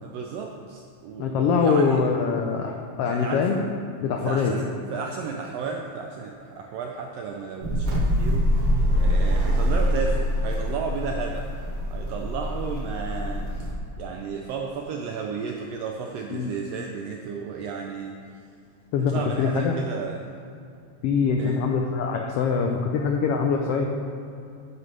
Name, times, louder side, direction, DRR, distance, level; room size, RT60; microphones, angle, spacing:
voice 1, 0.0-2.0 3.0-3.5 4.2-8.7 9.0-11.5 11.9-13.7 14.0-18.2 19.1-20.3 21.4-21.6, right 5 dB, 85° right, 2 dB, 1.4 m, -33 dB
voice 2, 1.2-3.6 4.0-4.5 16.3-16.5 18.9-19.8 21.0-23.8, left 5 dB, 85° left, 2 dB, 1.3 m, -23 dB
sound 1, 7.6-13.7, equal, 60° right, 0.9 m, -24 dB
10.5 x 7.7 x 3.3 m, 2.5 s
omnidirectional pair, 3.4 m